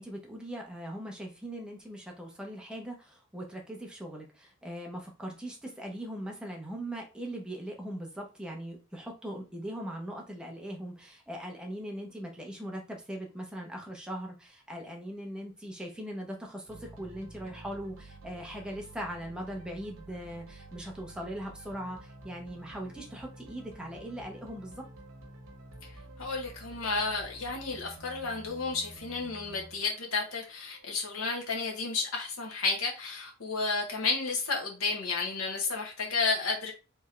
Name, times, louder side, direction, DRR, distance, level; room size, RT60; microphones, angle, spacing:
voice 1, 0.0-24.8, right 1 dB, 5° right, 0 dB, 0.9 m, -40 dB
sound 1, 16.7-31.4, right 2 dB, 85° right, 1.0 m, -50 dB
voice 2, 26.2-36.7, left 4 dB, 90° left, 0 dB, 1.1 m, -32 dB
3.6 x 3.4 x 3.2 m, 0.31 s
head